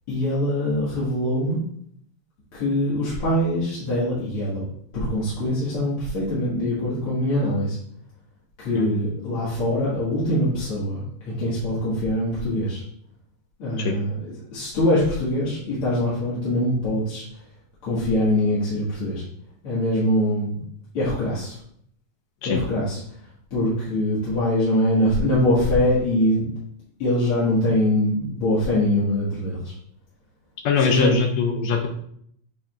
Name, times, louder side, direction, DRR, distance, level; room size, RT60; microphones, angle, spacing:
voice 1, 0.1-1.6 2.5-4.6 4.9-7.8 8.6-12.8 13.6-17.2 17.8-19.2 19.6-20.6 20.9-21.6 22.4-23.0 23.5-26.5 27.0-29.7 30.8-31.2, left 1 dB, 50° left, -9 dB, 2.1 m, -23 dB
voice 2, 30.7-31.9, left 5 dB, 75° left, 4 dB, 1.7 m, -22 dB
8.8 x 4.8 x 2.3 m, 0.68 s
omnidirectional pair, 3.4 m